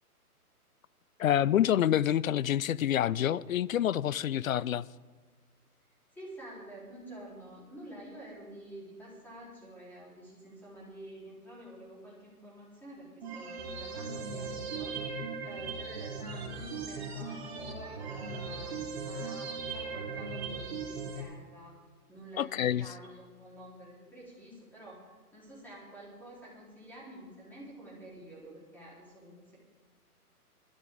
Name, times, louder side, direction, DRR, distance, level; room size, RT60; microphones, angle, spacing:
voice 1, 1.2-4.9 22.4-22.9, left 11 dB, 60° left, 0.5 m, -27 dB
voice 2, 6.1-15.2 15.4-21.7 22.1-29.6, right 1 dB, 5° left, 4.4 m, -49 dB
sound 1, 13.2-21.2, right 4 dB, 40° right, 2.7 m, -38 dB
20.5 x 13.0 x 3.9 m
hypercardioid pair, 140°, 46 cm